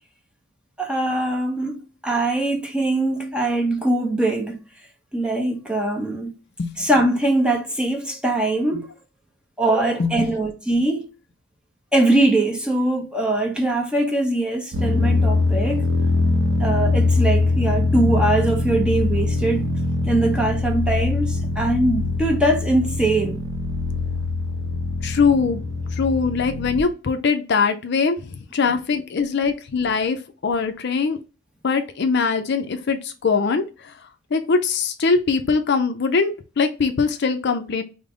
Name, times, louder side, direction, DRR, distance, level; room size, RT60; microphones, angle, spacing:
voice 1, 0.8-4.6 5.1-6.3 6.8-8.9 9.6-11.1 11.9-15.9 16.6-19.7 20.0-23.4, right 2 dB, 5° right, 0.6 m, -22 dB
sound 1, 14.7-26.8, left 3 dB, 65° right, 0.7 m, -22 dB
voice 2, 25.0-25.6 25.9-31.2 31.6-33.9 34.3-37.8, left 5 dB, 50° left, 0.4 m, -22 dB
5.1 x 2.0 x 3.6 m
head